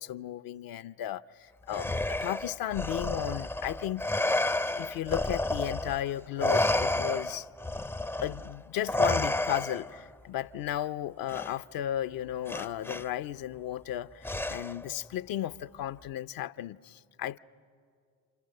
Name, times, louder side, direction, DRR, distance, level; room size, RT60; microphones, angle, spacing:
voice 1, 0.0-4.0 4.8-7.5 8.2-17.4, left 12 dB, 60° left, 0.7 m, -35 dB
Respiratory sounds, 1.7-6.0 6.4-10.0 11.3-11.5 12.5-13.0 14.2-14.9, left 2 dB, 5° left, 0.6 m, -30 dB
29.5 x 26.5 x 6.6 m
hypercardioid pair, 55°, 40 cm